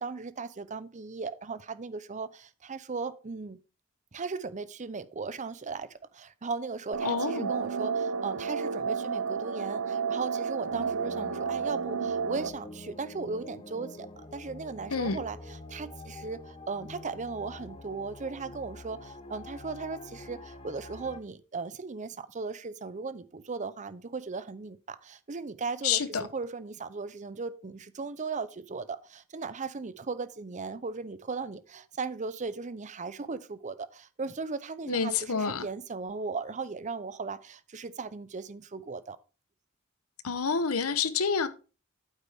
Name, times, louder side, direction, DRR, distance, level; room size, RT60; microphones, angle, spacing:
voice 1, 0.0-3.6 4.1-39.2, right 4 dB, 35° right, 0.6 m, -37 dB
sound 1, 6.9-12.5, right 5 dB, 70° right, 0.6 m, -31 dB
voice 2, 7.0-7.5 14.9-15.2 25.8-26.2 34.9-35.7 40.2-41.5, left 5 dB, 85° left, 0.9 m, -28 dB
sound 2, 10.7-21.2, left 2 dB, 25° left, 1.0 m, -46 dB
8.6 x 8.2 x 3.5 m
head